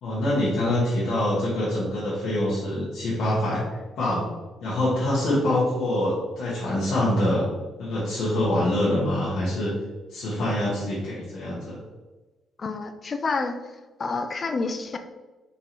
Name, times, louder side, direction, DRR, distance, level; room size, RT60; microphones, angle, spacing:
voice 1, 0.0-3.6 4.0-4.3 4.6-7.5 7.8-9.7 10.1-11.8, left 1 dB, 75° left, -9 dB, 1.5 m, -25 dB
voice 2, 12.6-13.6 14.0-15.0, left 4 dB, 40° left, 8 dB, 0.4 m, -28 dB
4.0 x 3.8 x 3.0 m, 1.2 s
cardioid pair, 90°, 0 cm